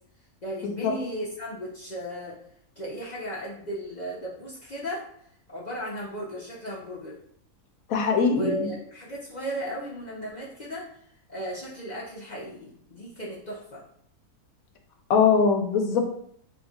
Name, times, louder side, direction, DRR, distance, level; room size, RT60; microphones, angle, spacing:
voice 1, 0.4-2.4 2.8-5.2 5.5-7.2 8.3-11.0 11.3-13.8, equal, 40° left, -6 dB, 0.6 m, -35 dB
voice 2, 7.9-8.5 15.1-16.0, left 5 dB, 70° left, 4 dB, 1.0 m, -21 dB
3.5 x 2.4 x 4.0 m, 0.66 s
omnidirectional pair, 1.6 m